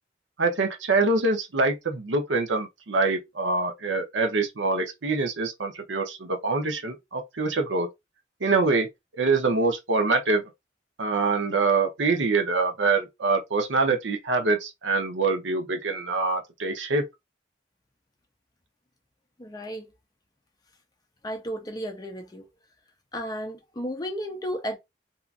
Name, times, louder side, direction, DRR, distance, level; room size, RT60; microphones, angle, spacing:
voice 1, 0.4-7.9 8.4-8.9 9.2-10.4 11.0-17.0, right 3 dB, 85° right, 0.8 m, -25 dB
voice 2, 19.4-19.9 21.2-22.5 23.1-24.8, equal, 20° left, 0.5 m, -33 dB
2.8 x 2.4 x 2.4 m
head